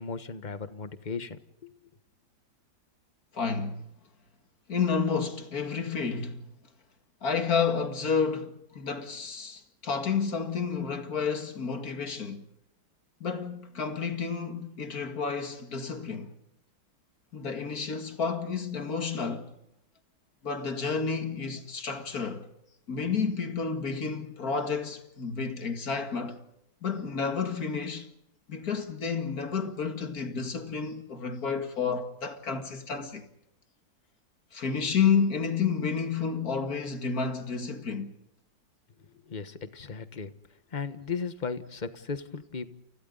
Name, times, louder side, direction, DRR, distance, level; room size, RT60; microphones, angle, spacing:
voice 1, 0.0-1.7 39.3-40.3 40.7-42.7, left 5 dB, 25° left, 1.3 m, -36 dB
voice 2, 3.3-3.9 4.7-6.5 7.2-12.5 13.2-16.3 17.3-19.5 20.4-22.5 22.9-26.4 26.8-28.1 28.5-33.3 34.5-38.1, left 5 dB, 50° left, 2.4 m, -30 dB
30.0 x 29.0 x 4.0 m
omnidirectional pair, 2.0 m